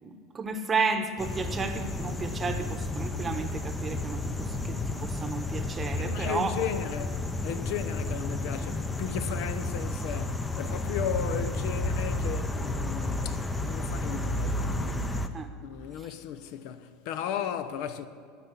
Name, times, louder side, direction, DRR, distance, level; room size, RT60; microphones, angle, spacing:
voice 1, 0.0-6.5 8.6-8.7 15.3-15.5 16.0-16.1, right 4 dB, 20° right, 1.0 m, -33 dB
sound 1, 1.2-15.3, left 2 dB, 15° left, 0.6 m, -32 dB
voice 2, 6.0-15.3 15.6-18.1, left 9 dB, 60° left, 0.6 m, -35 dB
13.5 x 5.8 x 8.3 m
supercardioid pair, 135°, 0 cm